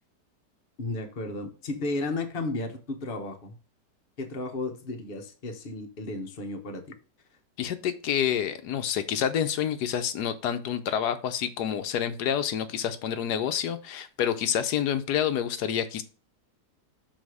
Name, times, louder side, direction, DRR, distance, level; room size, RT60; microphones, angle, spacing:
voice 1, 0.8-3.5 4.2-7.0, left 2 dB, 35° left, 1.1 m, -33 dB
voice 2, 7.6-16.0, left 9 dB, 70° left, 1.2 m, -28 dB
6.3 x 4.2 x 4.8 m
omnidirectional pair, 1.8 m